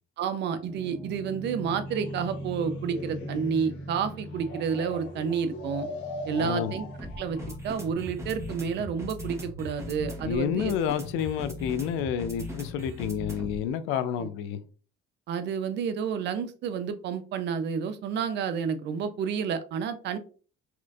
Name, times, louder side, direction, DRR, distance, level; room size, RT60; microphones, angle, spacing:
voice 1, 0.2-5.9 6.3-6.8 7.2-7.4 7.6-10.7 13.9-14.3 15.3-20.2, right 6 dB, 60° right, 0.5 m, -30 dB
sound 1, 0.6-13.7, equal, 15° right, 0.9 m, -40 dB
sound 2, 1.9-7.5, left 3 dB, 65° left, 1.4 m, -41 dB
voice 2, 6.4-6.7 10.2-14.6, left 9 dB, 90° left, 0.4 m, -29 dB
4.3 x 2.5 x 2.3 m
cardioid pair, 110°, 20 cm